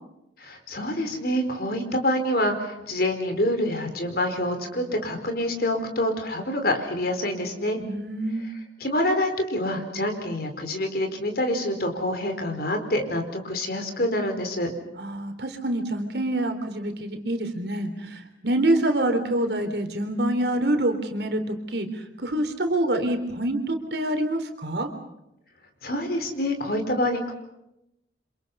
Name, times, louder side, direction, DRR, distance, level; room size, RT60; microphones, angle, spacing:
voice 1, 0.4-7.8 8.8-14.7 25.8-27.3, left 1 dB, 55° left, 6 dB, 4.5 m, -26 dB
voice 2, 7.8-8.5 15.0-24.9, right 1 dB, 65° right, 6 dB, 3.7 m, -26 dB
29.5 x 27.0 x 5.6 m, 0.84 s
head